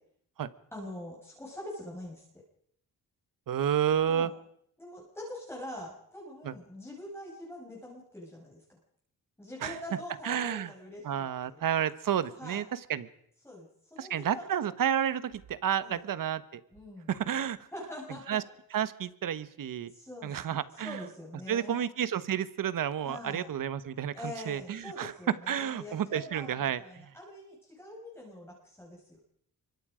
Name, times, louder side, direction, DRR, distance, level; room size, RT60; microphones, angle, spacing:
voice 1, 0.7-2.2 4.1-4.3 4.8-8.6 9.4-11.7 12.4-12.6 13.4-14.4 15.8-16.0 16.7-17.1 17.7-18.4 19.9-21.9 23.0-23.5 24.1-29.2, left 1 dB, 5° left, -3 dB, 5.9 m, -44 dB
voice 2, 3.5-4.3 6.4-6.5 9.6-9.8 10.2-10.7 11.0-13.1 14.0-16.6 17.1-17.6 18.3-18.4 18.7-19.9 20.2-21.0 21.5-27.1, right 9 dB, 65° right, 14 dB, 1.3 m, -31 dB
26.0 x 23.5 x 5.1 m, 0.69 s
cardioid pair, 120°, 35 cm